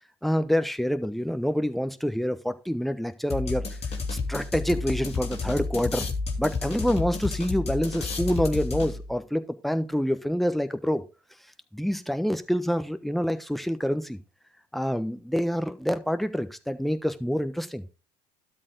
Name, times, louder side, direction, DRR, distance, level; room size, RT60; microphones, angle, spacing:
voice 1, 0.2-3.6 4.1-6.1 6.4-11.0 11.7-14.2 14.7-17.9, equal, ahead, 10 dB, 1.2 m, -27 dB
sound 1, 3.3-9.2, left 4 dB, 30° left, 2.4 m, -31 dB
12.5 x 4.5 x 5.2 m, 0.30 s
hypercardioid pair, 65°, 20 cm